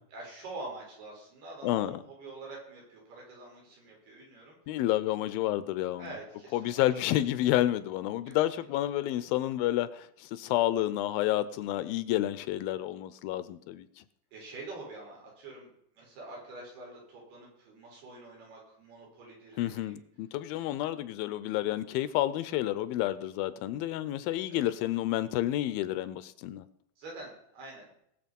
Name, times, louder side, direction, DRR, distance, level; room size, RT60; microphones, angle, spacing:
voice 1, 0.1-4.8 6.0-7.2 8.3-8.4 14.3-20.0 24.5-24.7 27.0-27.9, right 2 dB, 90° right, -2 dB, 7.0 m, -46 dB
voice 2, 1.6-2.0 4.7-6.2 6.5-14.0 19.6-26.7, left 14 dB, 80° left, 14 dB, 2.3 m, -30 dB
19.5 x 7.2 x 5.3 m, 0.74 s
omnidirectional pair, 4.4 m